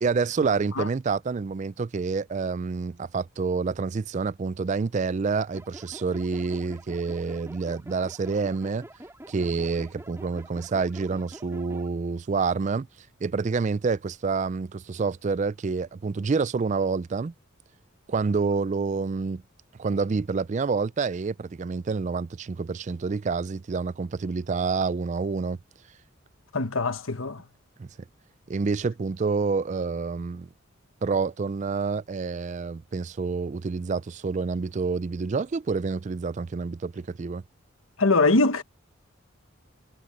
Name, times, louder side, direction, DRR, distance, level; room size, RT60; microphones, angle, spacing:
voice 1, 0.0-8.9 9.3-12.9 13.2-17.3 18.1-19.4 19.8-25.6 27.8-27.9 28.5-30.5 31.0-37.4, right 4 dB, 35° right, 0.3 m, -28 dB
sound 1, 5.5-11.9, right 1 dB, 10° right, 3.0 m, -46 dB
voice 2, 26.5-27.4 38.0-38.6, left 3 dB, 75° left, 1.4 m, -22 dB
head